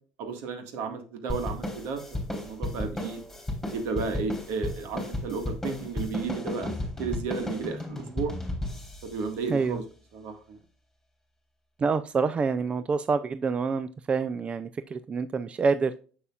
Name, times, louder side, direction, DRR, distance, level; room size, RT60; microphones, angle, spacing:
voice 1, 0.2-3.2 3.7-8.3 9.0-9.8 10.1-10.6, right 5 dB, 70° right, 7 dB, 1.8 m, -33 dB
sound 1, 1.3-10.1, left 1 dB, 5° left, 3.6 m, -34 dB
voice 2, 9.5-9.8 11.8-16.0, right 4 dB, 30° right, 13 dB, 0.4 m, -27 dB
7.1 x 6.7 x 2.4 m, 0.39 s
supercardioid pair, 90°, 4 cm